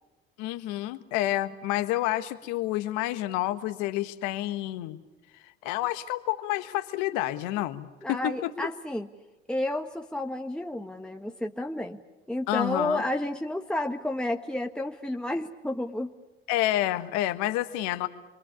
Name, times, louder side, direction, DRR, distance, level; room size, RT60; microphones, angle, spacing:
voice 1, 0.4-5.0 5.6-8.5 12.5-13.0 16.5-18.1, left 15 dB, 70° left, 10 dB, 1.5 m, -29 dB
voice 2, 8.0-9.1 9.5-12.0 12.3-16.1, left 1 dB, 5° left, 3 dB, 1.4 m, -31 dB
28.5 x 23.5 x 8.4 m, 1.1 s
hypercardioid pair, 60°, 31 cm